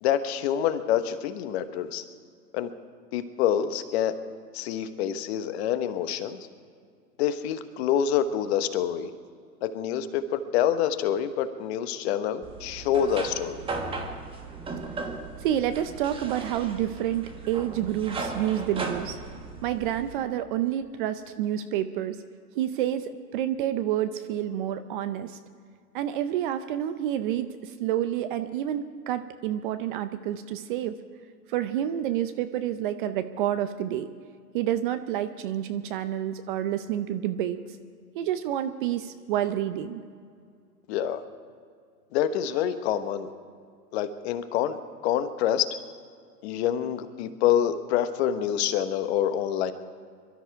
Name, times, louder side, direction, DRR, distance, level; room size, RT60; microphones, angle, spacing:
voice 1, 0.0-2.0 2.5-2.7 3.1-4.2 4.5-6.4 7.2-9.1 9.6-13.7 40.9-41.2 42.1-43.3 43.9-45.6 46.4-49.7, left 10 dB, 40° left, 10 dB, 1.1 m, -26 dB
sound 1, 12.4-20.2, right 3 dB, 10° right, 1.2 m, -36 dB
voice 2, 15.4-19.2 19.6-22.2 22.6-25.4 25.9-30.9 31.5-34.1 34.5-37.6 38.1-40.0, right 11 dB, 35° right, 11 dB, 0.6 m, -29 dB
23.5 x 12.5 x 4.7 m, 2.2 s
hypercardioid pair, 125°, 49 cm